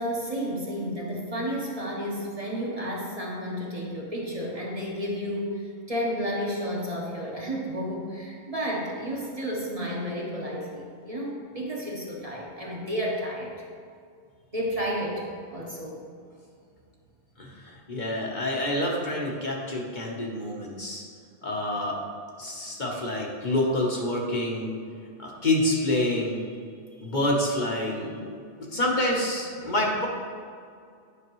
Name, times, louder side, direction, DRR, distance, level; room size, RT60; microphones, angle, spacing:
voice 1, 0.0-13.6 14.5-16.0, equal, 35° right, -3 dB, 1.0 m, -32 dB
voice 2, 17.9-21.0 21.4-22.0 22.4-24.7 25.2-26.4 27.0-28.4 28.7-30.1, left 1 dB, 45° left, -2 dB, 1.1 m, -27 dB
9.8 x 5.7 x 3.1 m, 2.2 s
omnidirectional pair, 1.2 m